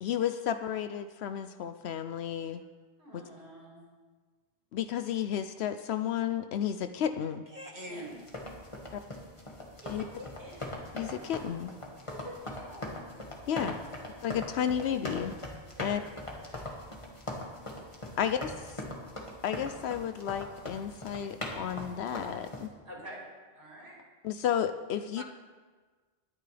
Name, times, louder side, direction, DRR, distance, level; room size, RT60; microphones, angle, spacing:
voice 1, 0.0-2.6 3.1-3.2 4.7-7.4 8.9-9.0 9.9-10.0 10.9-11.7 13.5-13.8 14.2-15.3 15.8-16.0 18.2-18.8 19.4-22.7 24.2-25.2, left 9 dB, 75° left, 10 dB, 0.8 m, -32 dB
voice 2, 3.0-3.8 7.9-8.1 9.8-10.8 12.1-12.9 13.5-14.0 15.8-16.5 16.7-16.8 22.9-23.2 23.5-24.0, equal, 75° right, -6 dB, 5.3 m, -47 dB
voice 3, 7.5-8.2 25.2-25.3, right 1 dB, 45° right, -1 dB, 1.5 m, -42 dB
sound 1, 8.1-22.7, left 1 dB, 30° left, 1.9 m, -41 dB
21.5 x 10.5 x 3.4 m, 1.4 s
omnidirectional pair, 1.1 m